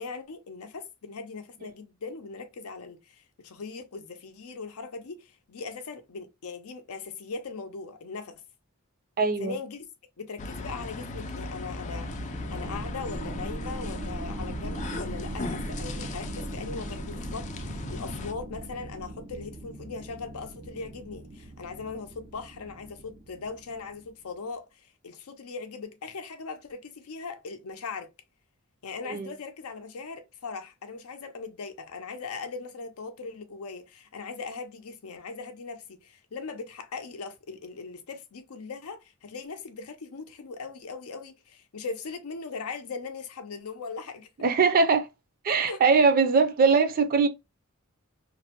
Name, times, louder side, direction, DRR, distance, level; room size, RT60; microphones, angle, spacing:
voice 1, 0.0-8.3 9.4-9.9 10.2-12.1 12.5-28.1 28.8-44.3 45.7-45.8, left 4 dB, 90° left, 0.6 m, -39 dB
voice 2, 9.2-9.5 29.1-29.3 44.4-45.1 45.4-47.3, right 4 dB, 45° right, 0.4 m, -21 dB
sound 1, 10.4-18.3, left 3 dB, 35° left, 0.3 m, -38 dB
sound 2, 11.8-24.1, right 1 dB, 85° right, 0.6 m, -39 dB
2.6 x 2.1 x 2.8 m
head